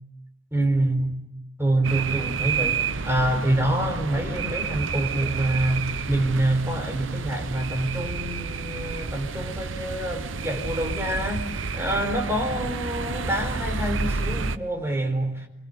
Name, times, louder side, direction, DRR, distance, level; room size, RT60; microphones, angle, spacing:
voice 1, 0.5-1.2 1.6-11.4 11.7-15.5, right 1 dB, 15° right, 4.1 m, -26 dB
sound 1, 1.8-14.6, right 4 dB, 70° right, 0.9 m, -30 dB
25.0 x 25.0 x 9.5 m
head